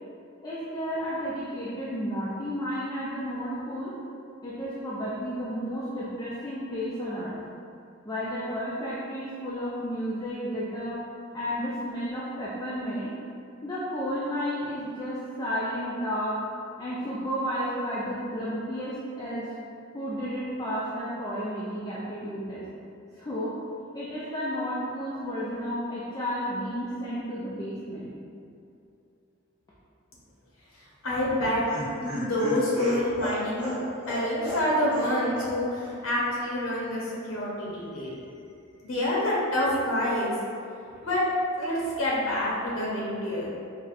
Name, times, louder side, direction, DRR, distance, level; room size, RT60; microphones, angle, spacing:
voice 1, 0.4-3.9 4.4-7.3 8.0-11.0 11.3-13.1 13.6-16.4 16.8-19.5 19.9-22.7 23.1-23.6 23.9-28.1, equal, 20° left, -8 dB, 0.3 m, -32 dB
voice 2, 31.0-31.6 32.0-38.1 38.8-40.3 41.0-41.2 41.6-43.5, left 1 dB, 75° left, -5 dB, 0.6 m, -27 dB
Laughter, 31.1-35.1 35.4-35.5 35.8-35.9, equal, 5° right, 0.7 m, -34 dB
4.0 x 2.0 x 2.4 m, 2.6 s
head